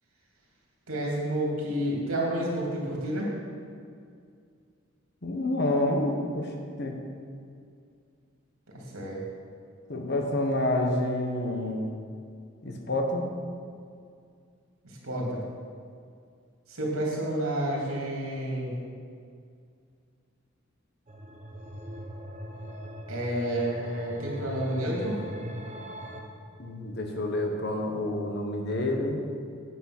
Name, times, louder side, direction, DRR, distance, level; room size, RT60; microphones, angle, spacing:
voice 1, 0.9-3.3 8.9-9.2 14.8-15.4 16.7-18.7 23.1-25.2, right 1 dB, 90° right, -3 dB, 3.0 m, -30 dB
voice 2, 5.2-6.5 6.8-7.0 9.9-11.9 12.6-13.3 26.6-29.2, left 1 dB, 55° left, 2 dB, 1.4 m, -28 dB
sound 1, 21.1-26.2, equal, 35° right, 0.9 m, -40 dB
9.2 x 8.6 x 6.2 m, 2.3 s
head